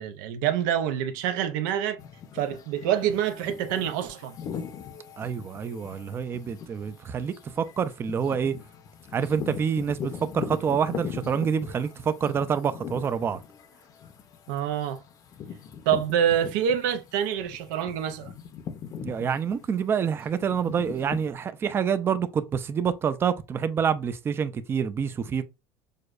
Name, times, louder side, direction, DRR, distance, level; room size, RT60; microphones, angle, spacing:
voice 1, 0.0-2.0 2.3-4.4 14.5-15.0 15.9-18.3, right 9 dB, 90° right, 0.6 m, -26 dB
sound 1, 2.0-17.1 17.5-21.3, left 7 dB, 35° left, 0.6 m, -40 dB
voice 2, 5.2-8.5 9.1-13.4 19.0-25.4, right 7 dB, 25° right, 0.4 m, -27 dB
6.4 x 2.2 x 2.4 m
cardioid pair, 145°, 10 cm